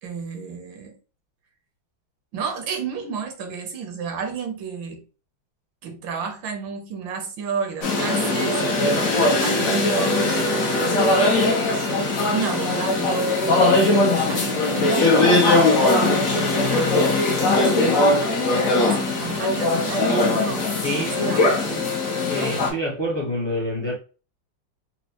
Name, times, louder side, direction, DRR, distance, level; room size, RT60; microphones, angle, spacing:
voice 1, 0.0-1.0 2.3-5.0 5.8-9.1 9.4-10.9 11.6-17.0 17.6-18.1 18.8-21.5, right 5 dB, 70° right, 1.3 m, -32 dB
sound 1, 7.8-22.7, left 2 dB, 55° left, 1.0 m, -20 dB
voice 2, 20.8-21.8 22.3-23.9, equal, 20° left, 0.8 m, -28 dB
4.2 x 2.2 x 2.8 m
omnidirectional pair, 2.3 m